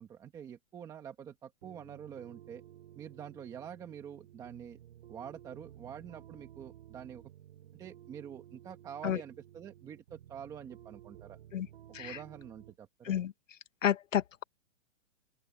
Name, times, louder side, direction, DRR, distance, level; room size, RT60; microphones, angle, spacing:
voice 1, 0.0-2.6 2.9-4.8 5.1-7.2 7.7-11.4 12.0-13.2, right 8 dB, 10° right, 1.4 m, -46 dB
sound 1, 1.6-12.8, right 12 dB, 45° right, 5.2 m, -54 dB
voice 2, 13.8-14.4, left 10 dB, 75° left, 2.0 m, -31 dB
open air
hypercardioid pair, 170°, 39 cm